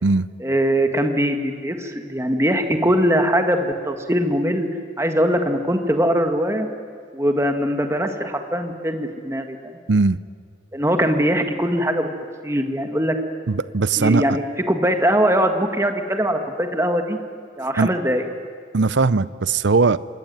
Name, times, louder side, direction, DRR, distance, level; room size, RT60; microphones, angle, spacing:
voice 1, 0.4-4.7 5.0-6.7 7.1-9.6 10.7-12.1 12.4-13.2 14.0-14.4 14.7-17.2 17.6-18.2, equal, 15° right, 6 dB, 1.7 m, -21 dB
voice 2, 9.9-10.2 13.5-14.2 17.8-17.9 18.7-20.0, right 4 dB, 75° right, 17 dB, 0.6 m, -19 dB
26.5 x 21.5 x 9.5 m, 2.1 s
head